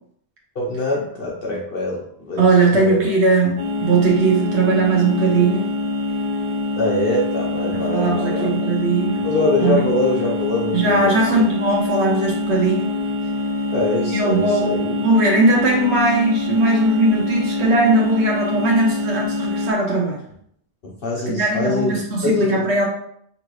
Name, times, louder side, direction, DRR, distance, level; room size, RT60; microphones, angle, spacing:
voice 1, 0.5-3.1 6.7-8.7 9.2-11.4 13.7-14.8 20.8-21.9 22.2-22.6, left 2 dB, 60° left, -3 dB, 1.0 m, -24 dB
voice 2, 2.4-5.7 7.7-9.3 9.6-9.8 10.7-13.0 14.1-20.2 21.3-22.9, right 2 dB, 85° right, -2 dB, 1.1 m, -19 dB
sound 1, 3.6-19.7, left 2 dB, 40° right, 1.1 m, -25 dB
5.6 x 2.5 x 3.1 m, 0.68 s
omnidirectional pair, 1.1 m